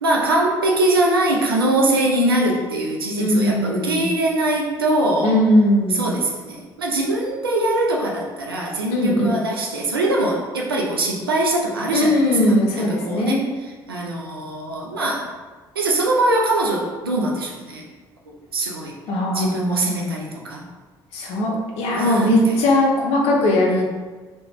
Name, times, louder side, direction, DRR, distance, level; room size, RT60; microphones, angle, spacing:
voice 1, 0.0-5.4 5.9-12.2 12.7-15.3 15.8-17.9 18.3-18.9 19.3-20.7 21.9-22.6 23.7-23.8, right 1 dB, 90° right, -2 dB, 0.4 m, -22 dB
voice 2, 3.2-4.0 5.2-6.0 8.9-9.4 11.9-13.5 19.1-20.0 21.1-23.8, left 1 dB, 60° left, -1 dB, 0.6 m, -19 dB
2.4 x 2.2 x 3.0 m, 1.3 s
figure-of-eight pair, 50°, 12 cm